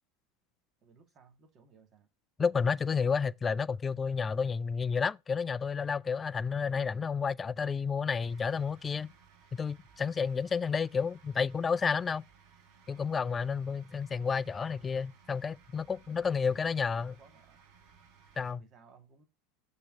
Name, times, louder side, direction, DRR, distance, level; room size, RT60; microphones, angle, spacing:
voice 1, 0.8-2.1 16.0-17.6 18.4-19.3, right 5 dB, 40° right, 2.0 m, -60 dB
voice 2, 2.4-9.1 9.6-12.2 12.9-17.1 18.4-18.6, left 5 dB, 25° left, 0.3 m, -31 dB
sound 1, 8.2-18.5, right 6 dB, 60° right, 1.8 m, -60 dB
6.7 x 4.3 x 5.4 m
hypercardioid pair, 85°, 0 cm